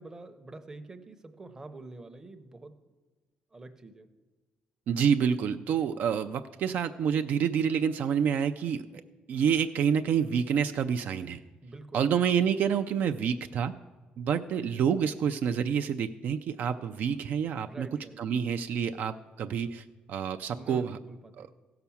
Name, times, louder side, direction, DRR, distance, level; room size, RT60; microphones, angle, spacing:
voice 1, 0.0-2.8 3.5-4.1 11.6-12.1 17.7-18.2 20.5-21.5, right 2 dB, 15° right, 7 dB, 0.7 m, -46 dB
voice 2, 4.9-8.9 9.3-11.4 11.9-13.7 14.2-17.9 18.2-21.0 21.4-21.5, right 7 dB, 60° right, 8 dB, 0.4 m, -28 dB
16.0 x 5.8 x 7.1 m, 1.2 s
cardioid pair, 175°, 3 cm